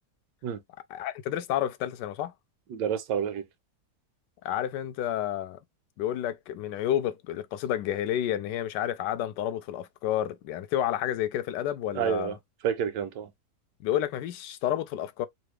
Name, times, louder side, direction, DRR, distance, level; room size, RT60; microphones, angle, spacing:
voice 1, 0.9-2.3 4.4-5.6 6.0-12.3 13.8-15.3, left 11 dB, 85° left, 1.2 m, -30 dB
voice 2, 2.7-3.4 11.9-12.4 12.6-13.3, right 8 dB, 90° right, 1.4 m, -29 dB
3.9 x 2.0 x 3.1 m
omnidirectional pair, 1.9 m